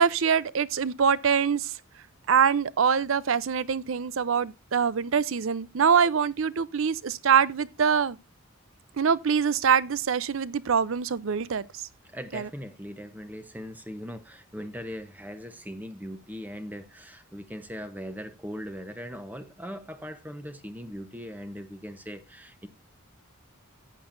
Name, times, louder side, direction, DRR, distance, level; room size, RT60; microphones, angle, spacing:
voice 1, 0.0-1.7 2.3-8.2 9.0-11.7 12.3-12.5, right 6 dB, 65° right, 0.5 m, -24 dB
voice 2, 12.1-22.7, equal, 10° right, 0.8 m, -40 dB
14.5 x 8.7 x 2.6 m
head